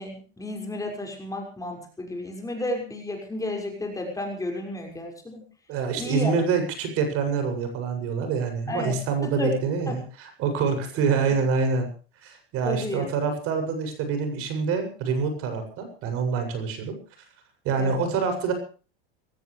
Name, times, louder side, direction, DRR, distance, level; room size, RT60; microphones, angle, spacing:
voice 1, 0.0-5.4 6.0-6.3 8.7-9.0 9.4-9.5 9.9-10.0 12.6-13.0 17.8-18.0, left 2 dB, 10° left, 2 dB, 6.0 m, -32 dB
voice 2, 5.7-11.9 12.2-17.0 17.6-18.5, right 5 dB, 50° right, 7 dB, 7.5 m, -26 dB
22.5 x 17.5 x 3.4 m, 0.37 s
supercardioid pair, 120°, 29 cm